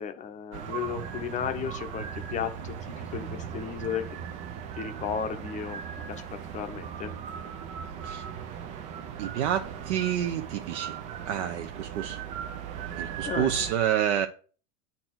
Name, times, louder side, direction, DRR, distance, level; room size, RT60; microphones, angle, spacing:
voice 1, 0.0-4.2 4.8-5.8 6.1-7.1 13.2-13.5, left 8 dB, 20° left, 0.8 m, -34 dB
sound 1, 0.5-13.7, right 8 dB, 20° right, 0.4 m, -38 dB
voice 2, 9.2-11.0 11.3-12.2 13.0-14.3, right 10 dB, 55° right, 0.9 m, -28 dB
9.0 x 4.2 x 6.0 m
supercardioid pair, 145°, 41 cm